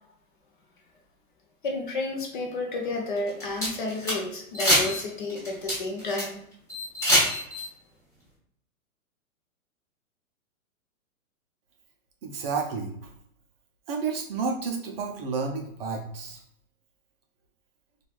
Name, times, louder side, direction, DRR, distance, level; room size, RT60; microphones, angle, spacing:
voice 1, 1.6-6.4 7.0-7.5, left 2 dB, 35° left, 0 dB, 0.4 m, -31 dB
sound 1, 3.2-4.2 4.5-5.0 5.3-6.2 6.7-7.6, equal, 5° left, 0.9 m, -24 dB
voice 2, 12.2-12.9 13.9-16.4, right 5 dB, 45° right, 1 dB, 0.4 m, -31 dB
3.0 x 2.3 x 2.3 m, 0.71 s
hypercardioid pair, 145°, 44 cm